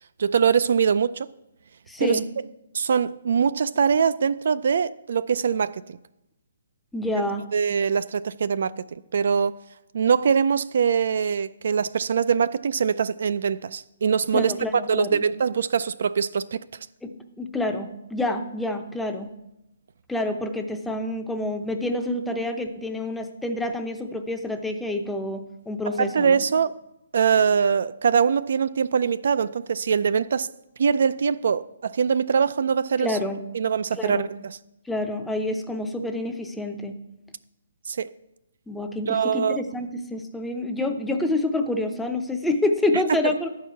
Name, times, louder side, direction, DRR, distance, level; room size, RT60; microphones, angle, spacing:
voice 1, 0.2-1.3 2.0-2.2 2.7-6.0 7.5-9.6 9.9-14.5 14.9-16.6 25.9-26.7 27.1-30.5 30.8-33.2 33.5-34.6 37.9-38.1 39.1-39.6 42.9-43.3, right 6 dB, 65° right, 0.3 m, -23 dB
voice 2, 1.9-2.2 6.9-7.5 14.3-15.2 17.0-17.1 17.4-19.3 20.1-26.4 33.0-33.4 33.9-34.3 34.9-37.0 38.7-43.5, left 2 dB, 5° left, 0.6 m, -28 dB
10.5 x 4.7 x 6.8 m
hypercardioid pair, 155°, 0 cm